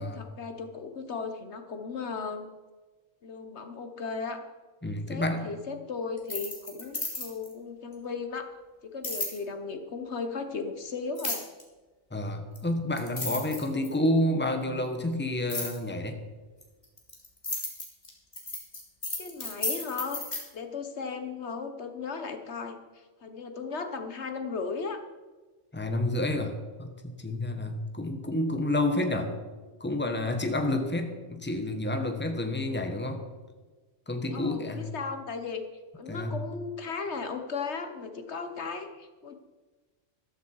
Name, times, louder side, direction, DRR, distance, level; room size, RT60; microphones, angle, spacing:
voice 1, 0.0-2.5 3.2-4.4 5.1-8.5 8.8-11.5 13.6-13.9 19.2-20.2 20.5-25.0 34.3-35.6 35.9-39.4, left 5 dB, 65° left, 7 dB, 1.3 m, -36 dB
voice 2, 4.8-5.6 12.1-16.2 25.7-29.3 29.8-33.2 34.1-34.8 36.1-36.3, left 1 dB, 10° left, 6 dB, 1.3 m, -29 dB
sound 1, 6.2-7.5 9.0-9.4 11.2-11.6 12.6-12.7 13.0-14.1 15.5-15.8 16.6-20.4, left 2 dB, 35° left, 3.0 m, -33 dB
14.0 x 13.5 x 4.7 m, 1.3 s
omnidirectional pair, 1.3 m